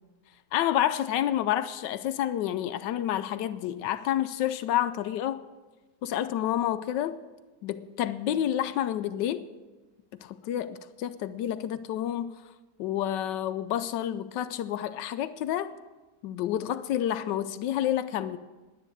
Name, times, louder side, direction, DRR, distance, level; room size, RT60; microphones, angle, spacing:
voice 1, 0.5-5.4 6.0-7.2 7.6-9.5 10.1-12.3 12.8-15.7 16.2-18.4, left 11 dB, 75° left, 1.2 m, -29 dB
10.0 x 9.9 x 7.8 m
omnidirectional pair, 2.0 m